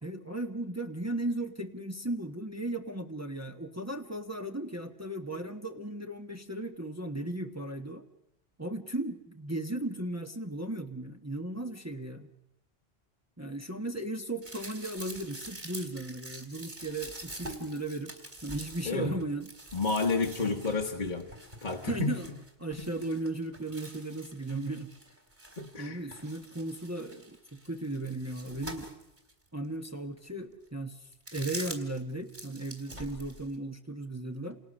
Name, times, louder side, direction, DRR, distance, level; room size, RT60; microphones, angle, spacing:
voice 1, 0.0-8.0 8.6-12.3 13.4-18.1 18.4-19.5 21.9-22.3 22.6-24.9 25.8-28.9 29.5-31.0 31.3-34.6, right 2 dB, 15° right, 5 dB, 1.1 m, -36 dB
sound 1, 14.4-25.8 26.1-29.3 29.8-29.9 31.1-32.0 32.3-33.6, right 1 dB, 45° right, 3.8 m, -45 dB
voice 2, 18.8-19.1 19.7-21.3 21.6-22.2 25.6-26.0, left 3 dB, 45° left, 2 dB, 1.7 m, -30 dB
29.0 x 28.0 x 6.4 m, 0.87 s
omnidirectional pair, 1.1 m